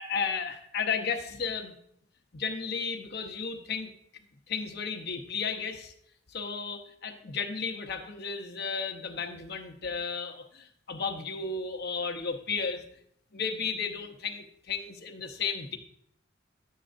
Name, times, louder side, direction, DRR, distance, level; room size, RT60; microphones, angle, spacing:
voice 1, 0.0-1.7 2.3-3.9 4.5-5.9 6.3-12.8 13.3-15.8, left 5 dB, 55° left, 5 dB, 0.8 m, -33 dB
11.0 x 7.5 x 2.6 m, 0.70 s
head